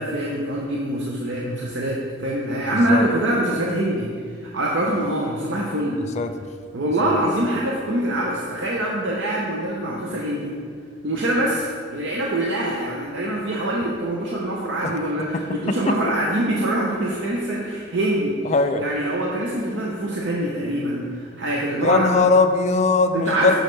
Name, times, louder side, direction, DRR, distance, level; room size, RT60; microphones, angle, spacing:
voice 1, 0.0-6.0 6.7-10.5 11.0-22.1 23.1-23.6, right 1 dB, 65° right, -3 dB, 0.7 m, -24 dB
voice 2, 2.7-3.0 6.2-6.3 7.0-7.1 14.8-14.9 15.3-15.4 15.7-16.0 18.5-18.8 21.8-23.6, left 3 dB, 35° left, 8 dB, 0.3 m, -20 dB
6.4 x 6.3 x 3.2 m, 2.1 s
head